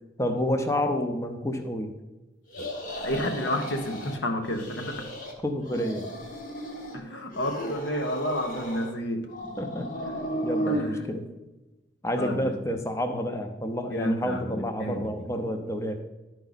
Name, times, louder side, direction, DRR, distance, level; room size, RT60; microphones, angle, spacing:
voice 1, 0.2-1.9 5.4-6.1 9.6-10.2 10.4-11.2 12.0-16.0, equal, 15° left, 5 dB, 0.6 m, -29 dB
sound 1, 2.5-4.2 4.5-5.3 5.6-7.0 7.3-8.9 9.3-10.8, equal, 45° left, 1.1 m, -34 dB
voice 2, 3.0-5.1 6.9-9.3 10.6-11.2 12.2-12.5 13.9-15.1, left 1 dB, 80° left, 4 dB, 1.1 m, -30 dB
11.5 x 4.5 x 4.0 m, 1.1 s
head